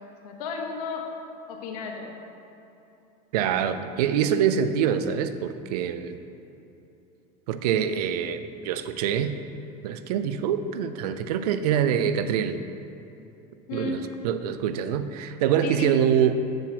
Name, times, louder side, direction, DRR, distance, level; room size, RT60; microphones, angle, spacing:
voice 1, 0.2-1.1 1.5-2.2 13.7-14.1 15.6-16.0, left 3 dB, 80° left, 1 dB, 1.3 m, -33 dB
voice 2, 3.3-6.2 7.5-9.3 9.8-12.6 13.7-16.3, right 8 dB, 85° right, 11 dB, 0.5 m, -25 dB
7.9 x 4.4 x 6.0 m, 2.9 s
supercardioid pair, 110°, 19 cm